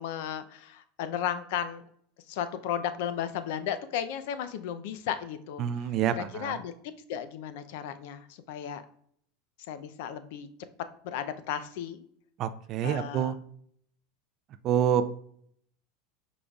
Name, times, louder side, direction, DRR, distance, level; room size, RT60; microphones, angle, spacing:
voice 1, 0.0-1.8 2.3-5.6 6.1-6.7 7.1-8.8 9.7-10.5 11.0-12.0 12.8-13.3, left 9 dB, 70° left, 11 dB, 0.4 m, -34 dB
voice 2, 5.6-6.6 12.4-13.3 14.6-15.1, right 9 dB, 40° right, 12 dB, 0.3 m, -27 dB
4.9 x 3.9 x 2.3 m, 0.66 s
supercardioid pair, 135°, 0 cm